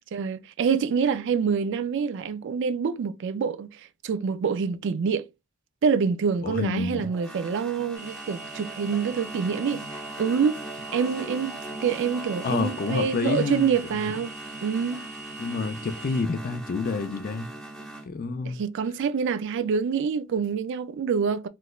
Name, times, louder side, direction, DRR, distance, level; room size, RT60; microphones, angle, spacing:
voice 1, 0.1-5.3 5.8-10.6 10.9-14.3 14.6-15.1 18.4-21.5, right 6 dB, 60° right, 0.3 m, -26 dB
voice 2, 6.4-7.1 12.4-13.7 15.4-17.5 18.0-18.6, left 4 dB, 45° left, 0.4 m, -28 dB
sound 1, 7.0-18.1, right 2 dB, ahead, 0.8 m, -40 dB
sound 2, 7.9-16.2, right 3 dB, 35° right, 1.3 m, -43 dB
3.2 x 2.9 x 2.3 m
head